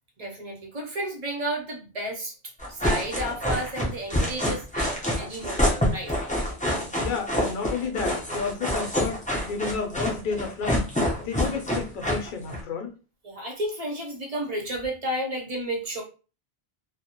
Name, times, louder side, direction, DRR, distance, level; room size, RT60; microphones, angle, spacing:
voice 1, 0.2-2.3 2.7-6.1 11.3-11.5 13.2-16.0, right 1 dB, 40° right, -1 dB, 0.7 m, -32 dB
sound 1, 2.6-12.6, equal, 10° left, 0.5 m, -26 dB
voice 2, 7.0-10.9 11.2-12.9, left 5 dB, 60° left, 5 dB, 0.6 m, -31 dB
2.1 x 2.1 x 2.9 m, 0.34 s
omnidirectional pair, 1.0 m